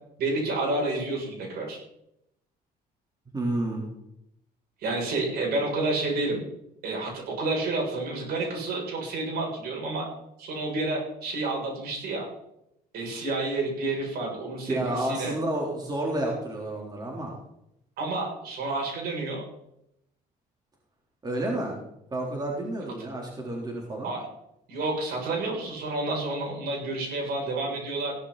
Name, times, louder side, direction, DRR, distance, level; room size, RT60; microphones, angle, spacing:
voice 1, 0.2-1.8 4.8-6.4 6.8-10.1 10.4-12.3 12.9-15.3 18.0-19.5 23.0-23.1 24.0-24.2 24.7-28.1, right 2 dB, 70° right, -1 dB, 7.2 m, -29 dB
voice 2, 3.3-3.9 14.7-17.4 21.2-21.8 22.1-24.1, right 1 dB, 25° right, -2 dB, 3.9 m, -30 dB
16.5 x 11.5 x 4.2 m, 0.80 s
cardioid pair, 110°, 17 cm